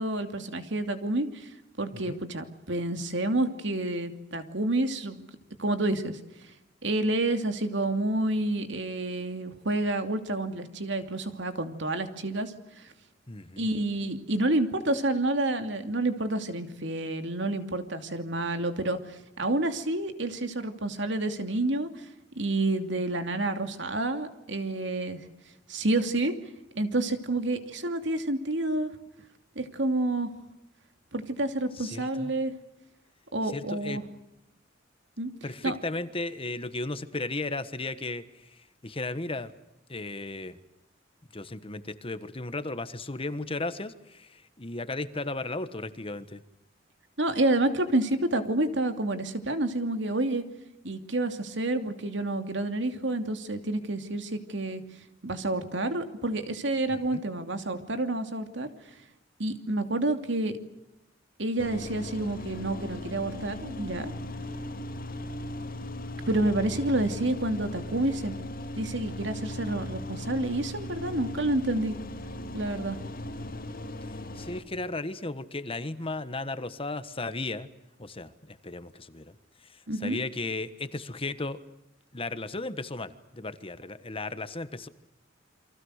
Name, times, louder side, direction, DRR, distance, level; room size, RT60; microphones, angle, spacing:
voice 1, 0.0-1.5 1.8-5.2 5.6-6.2 6.8-12.5 12.8-12.9 13.6-22.1 22.4-25.2 25.7-26.4 26.8-28.9 29.6-30.3 31.1-32.5 33.3-34.0 35.2-35.3 35.6-35.7 47.2-50.4 50.8-54.8 55.2-58.7 59.4-60.6 61.4-64.1 66.2-68.3 68.8-72.0 72.5-73.0 79.9-80.2, right 2 dB, 70° right, 7 dB, 2.7 m, -29 dB
voice 2, 13.3-13.7 31.8-32.3 33.4-34.0 35.4-39.5 39.9-40.6 41.3-46.4 56.9-57.2 74.3-77.7 78.0-79.3 79.7-81.6 82.1-84.9, left 2 dB, 30° left, 12 dB, 1.4 m, -35 dB
sound 1, 61.6-74.6, left 1 dB, 50° left, 2.2 m, -38 dB
29.0 x 24.5 x 6.6 m, 0.88 s
head